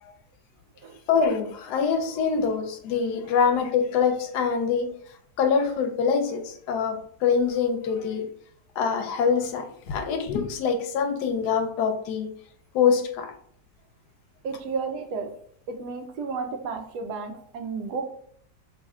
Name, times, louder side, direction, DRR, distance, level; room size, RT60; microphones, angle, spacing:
voice 1, 1.1-4.9 5.4-8.2 8.8-12.3 12.7-13.3, left 6 dB, 90° left, 6 dB, 1.2 m, -24 dB
voice 2, 14.4-15.3 15.7-18.0, right 4 dB, 85° right, 6 dB, 1.2 m, -32 dB
4.2 x 3.2 x 2.3 m, 0.62 s
omnidirectional pair, 1.7 m